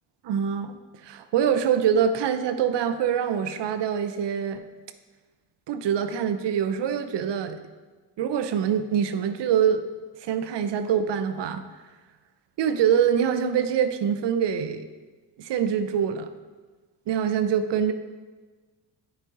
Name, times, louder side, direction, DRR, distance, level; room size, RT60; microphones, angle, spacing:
voice 1, 0.2-4.6 5.7-7.6 8.2-9.8 10.2-11.6 12.6-14.9 15.4-16.3 17.1-17.9, right 8 dB, 55° right, 9 dB, 0.8 m, -24 dB
8.8 x 6.2 x 3.9 m, 1.3 s
supercardioid pair, 65°, 49 cm